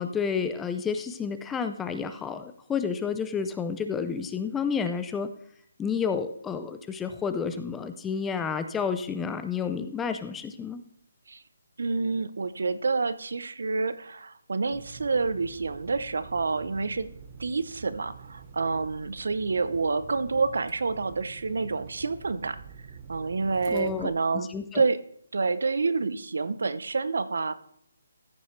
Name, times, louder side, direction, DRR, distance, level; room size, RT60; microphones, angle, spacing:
voice 1, 0.0-5.3 5.8-10.8 23.7-24.1 24.5-24.8, left 6 dB, 10° left, 9 dB, 0.4 m, -30 dB
voice 2, 11.8-17.1 17.4-22.6 23.1-24.5 24.7-25.0 25.3-27.5, right 4 dB, 75° right, 14 dB, 0.7 m, -28 dB
sound 1, 14.7-24.1, right 6 dB, 30° right, 1.0 m, -47 dB
14.0 x 7.1 x 3.2 m, 0.66 s
hypercardioid pair, 165°, 0 cm